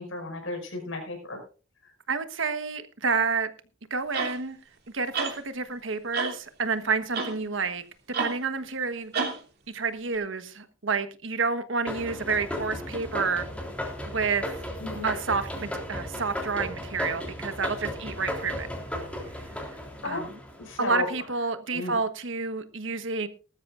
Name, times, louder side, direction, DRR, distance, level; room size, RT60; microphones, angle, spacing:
voice 1, 0.0-1.4 14.8-15.1 20.0-20.2 20.7-21.1 21.7-21.9, left 2 dB, 75° left, 5.8 m, -33 dB
voice 2, 2.1-3.5 3.9-4.6 4.9-7.8 8.2-9.1 9.7-13.5 14.1-14.4 15.0-18.7 20.0-20.3 20.8-23.3, right 4 dB, 70° right, 1.3 m, -29 dB
sound 1, 4.1-4.4 5.1-5.4 6.1-6.4 7.1-7.4 8.1-8.4 9.1-9.4 10.1-10.2, right 5 dB, 55° right, 3.1 m, -29 dB
sound 2, 11.9-21.0, left 1 dB, 5° left, 3.4 m, -35 dB
19.5 x 13.0 x 2.6 m
head